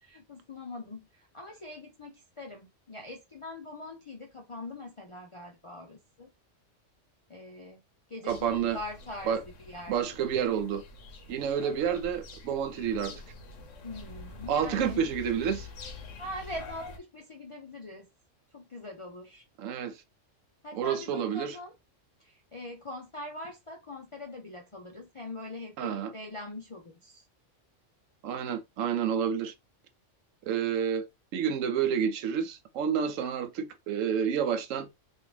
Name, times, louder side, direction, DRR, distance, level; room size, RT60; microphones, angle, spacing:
voice 1, 0.0-6.3 7.3-7.8 8.1-10.2 13.8-15.1 16.2-18.1 18.5-19.4 20.6-21.7 22.2-27.3, left 2 dB, 50° left, 0.3 m, -42 dB
sound 1, 8.3-17.0, left 3 dB, 80° left, 1.1 m, -46 dB
voice 2, 8.3-8.8 9.3-9.4 9.9-10.8 11.3-13.2 14.5-15.7 19.6-20.0 20.7-21.6 25.8-26.1 28.2-29.5 30.4-31.1 31.3-34.9, right 8 dB, 90° right, 1.0 m, -29 dB
3.2 x 2.5 x 3.1 m
omnidirectional pair, 1.3 m